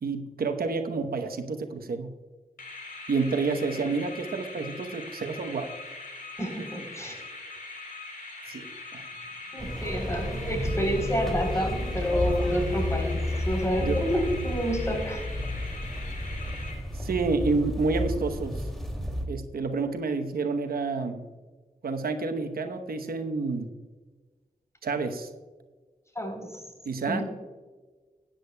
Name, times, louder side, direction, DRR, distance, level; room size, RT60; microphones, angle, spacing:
voice 1, 0.0-2.1 3.1-5.7 8.5-8.7 8.9-9.1 13.8-14.0 16.9-18.7 19.3-21.3 21.8-23.7 24.8-25.3 26.8-27.2, right 4 dB, 90° right, 6 dB, 0.9 m, -29 dB
sound 1, 2.6-17.2, left 3 dB, 70° left, 3.5 m, -42 dB
voice 2, 6.4-7.2 9.5-15.3 26.2-26.6 27.1-27.2, equal, 20° left, 3 dB, 3.6 m, -29 dB
sound 2, 9.6-19.3, left 1 dB, ahead, 2.4 m, -31 dB
16.5 x 9.8 x 2.2 m, 1.4 s
wide cardioid pair, 65°, 15 cm